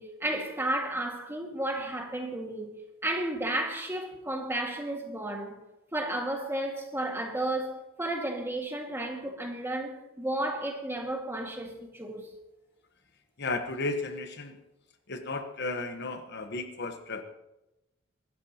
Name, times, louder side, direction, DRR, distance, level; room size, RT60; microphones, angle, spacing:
voice 1, 0.0-5.6 5.9-12.3, right 1 dB, 10° right, 1.9 m, -33 dB
voice 2, 13.4-14.6 15.1-17.2, left 3 dB, 50° left, 1.1 m, -34 dB
23.5 x 13.0 x 2.9 m
head